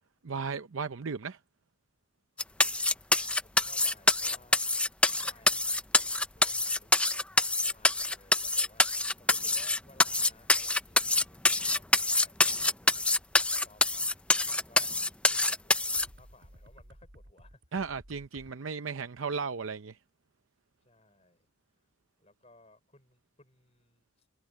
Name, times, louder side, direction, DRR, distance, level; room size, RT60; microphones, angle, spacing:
voice 1, 0.2-1.4 17.7-20.0, right 5 dB, 85° right, 0.7 m, -35 dB
sound 1, 2.4-16.1, left 2 dB, 5° left, 0.5 m, -25 dB
voice 2, 2.5-4.9 5.2-6.0 6.3-7.3 7.6-17.8 20.8-21.5 21.8-21.9 22.2-24.3, left 2 dB, 30° left, 5.7 m, -61 dB
sound 2, 9.6-18.5, equal, 65° right, 4.2 m, -57 dB
head